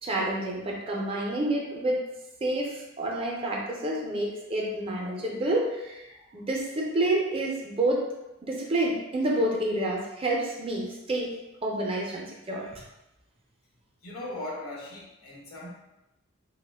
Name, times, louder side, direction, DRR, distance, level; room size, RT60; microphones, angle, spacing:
voice 1, 0.0-2.0 2.4-8.1 8.4-11.4 11.6-12.8, right 1 dB, 25° right, -2 dB, 0.4 m, -29 dB
voice 2, 14.0-15.7, left 1 dB, 90° left, -3 dB, 0.8 m, -39 dB
2.9 x 2.1 x 3.3 m, 0.94 s
head